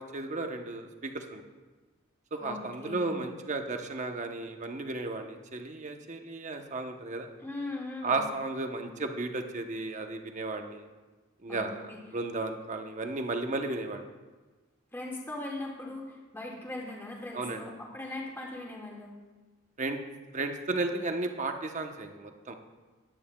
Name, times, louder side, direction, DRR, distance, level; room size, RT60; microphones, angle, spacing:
voice 1, 0.0-1.4 2.3-7.3 8.0-10.8 11.4-11.8 12.1-14.1 17.3-17.6 19.8-20.0 20.3-22.6, right 3 dB, 40° right, 5 dB, 0.9 m, -34 dB
voice 2, 2.4-3.1 7.4-8.3 11.5-12.0 14.9-19.1, left 2 dB, 10° left, -3 dB, 1.9 m, -39 dB
19.0 x 9.4 x 2.3 m, 1.3 s
head